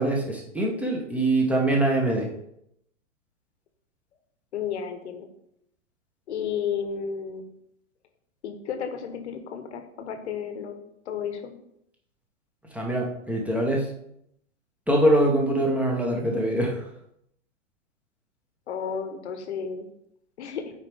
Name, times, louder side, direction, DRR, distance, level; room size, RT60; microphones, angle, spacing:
voice 1, 0.0-2.3 12.7-13.9 14.9-16.9, right 1 dB, 5° right, -1 dB, 1.5 m, -23 dB
voice 2, 4.5-5.3 6.3-7.4 8.4-10.8 11.0-11.5 18.7-19.9 20.4-20.6, left 7 dB, 60° left, 7 dB, 1.3 m, -32 dB
8.6 x 4.8 x 3.7 m, 0.76 s
figure-of-eight pair, 105°, 38 cm